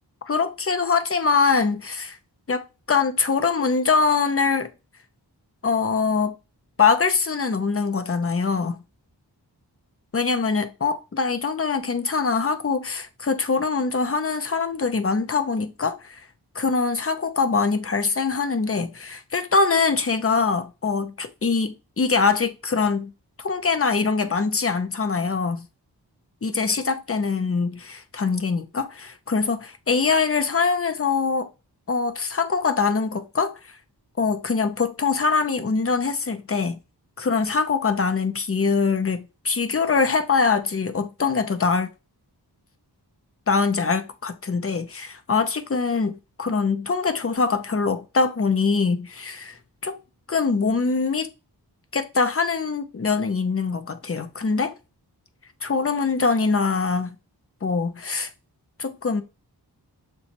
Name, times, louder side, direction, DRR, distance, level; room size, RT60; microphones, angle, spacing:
voice 1, 0.3-2.2 2.5-4.7 5.6-6.4 6.8-8.8 10.1-16.2 16.5-23.1 23.4-25.7 26.4-31.5 31.9-33.7 34.2-36.8 37.2-41.9 43.5-50.0 50.3-51.3 51.9-54.7 55.6-57.2 57.6-58.3 58.8-59.2, left 4 dB, 35° left, 0.6 m, -23 dB
6.8 x 2.3 x 2.9 m
wide cardioid pair, 60°, 41 cm